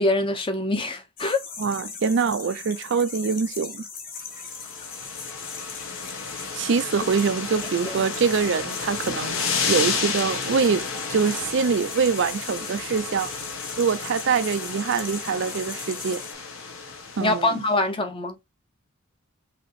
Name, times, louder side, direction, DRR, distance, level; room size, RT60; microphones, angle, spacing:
voice 1, 0.0-1.4 7.8-8.0 17.2-18.4, left 2 dB, 25° left, 0.7 m, -24 dB
sound 1, 1.2-16.3, left 5 dB, 40° left, 1.2 m, -39 dB
voice 2, 1.6-3.9 6.5-10.8 11.1-13.3 13.8-16.2 17.2-17.6, right 5 dB, 55° right, 0.4 m, -24 dB
sound 2, 4.4-17.6, left 5 dB, 65° left, 1.2 m, -32 dB
5.8 x 2.9 x 3.2 m
head